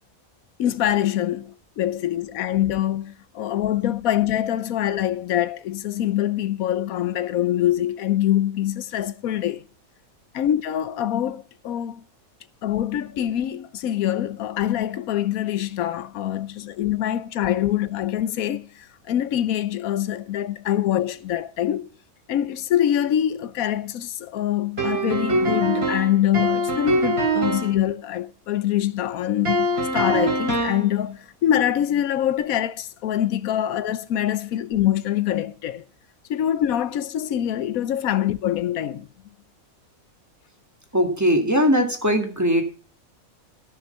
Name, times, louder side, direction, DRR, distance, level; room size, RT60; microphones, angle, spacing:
voice 1, 0.6-9.6 10.3-12.0 12.6-18.7 19.1-21.9 22.3-29.7 29.9-35.8 36.3-39.1, left 11 dB, 85° left, 1.1 m, -24 dB
sound 1, 24.8-27.8 29.4-30.9, right 1 dB, 45° right, 3.8 m, -23 dB
voice 2, 40.9-42.6, equal, 10° right, 2.0 m, -20 dB
13.5 x 6.5 x 5.4 m
omnidirectional pair, 1.5 m